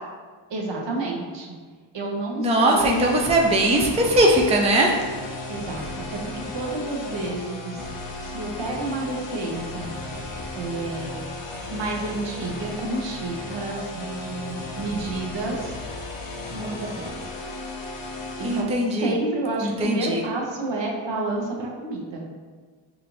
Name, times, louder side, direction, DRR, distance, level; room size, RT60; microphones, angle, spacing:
voice 1, 0.5-1.5 1.9-3.0 5.5-7.9 8.2-9.9 10.5-11.2 11.7-15.8 16.5-17.0 18.4-22.3, right 2 dB, 65° right, -1 dB, 0.9 m, -30 dB
voice 2, 2.4-5.0 18.4-19.1 19.6-20.2, right 1 dB, 15° right, 0 dB, 0.4 m, -20 dB
sound 1, 2.8-18.6, left 2 dB, 65° left, 0.8 m, -35 dB
4.9 x 2.5 x 3.0 m, 1.5 s
cardioid pair, 80°, 48 cm